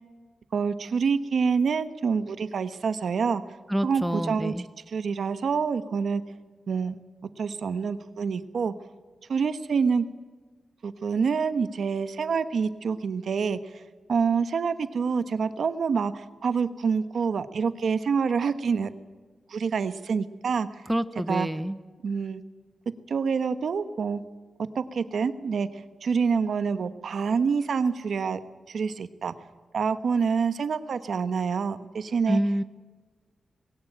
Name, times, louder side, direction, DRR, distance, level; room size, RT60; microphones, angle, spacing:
voice 1, 0.5-3.4 3.8-4.5 4.9-6.2 6.7-7.0 7.4-8.7 9.3-10.0 10.8-13.8 14.1-18.9 19.5-20.7 21.3-21.5 22.0-22.4 23.1-24.2 24.7-28.4 28.7-29.3 29.7-32.4, right 5 dB, 70° right, 12 dB, 1.1 m, -27 dB
voice 2, 3.7-4.7 20.9-21.8 32.3-32.6, equal, 5° right, 13 dB, 0.6 m, -27 dB
21.0 x 17.5 x 8.9 m, 1.4 s
wide cardioid pair, 180°, 0 cm